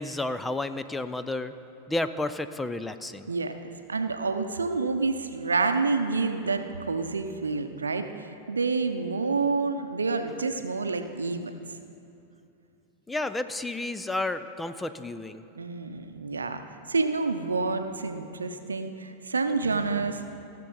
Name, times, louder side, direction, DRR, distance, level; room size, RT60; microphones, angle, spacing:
voice 1, 0.0-1.5 1.9-3.3 13.1-15.4, left 2 dB, 10° left, 11 dB, 0.5 m, -31 dB
voice 2, 3.3-11.5 15.6-16.6 16.9-20.4, right 4 dB, 85° right, 8 dB, 0.6 m, -28 dB
17.0 x 6.7 x 5.5 m, 2.7 s
hypercardioid pair, 95°, 0 cm